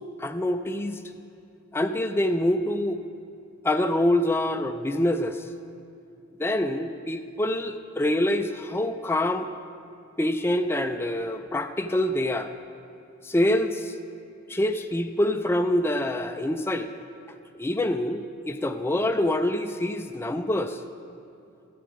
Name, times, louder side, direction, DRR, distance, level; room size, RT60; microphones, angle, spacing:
voice 1, 0.2-1.0 1.7-3.0 3.6-5.4 6.4-9.5 10.2-12.5 13.2-13.9 14.5-16.9 17.6-20.8, left 1 dB, 10° left, 7 dB, 0.4 m, -25 dB
14.5 x 9.4 x 4.9 m, 2.6 s
head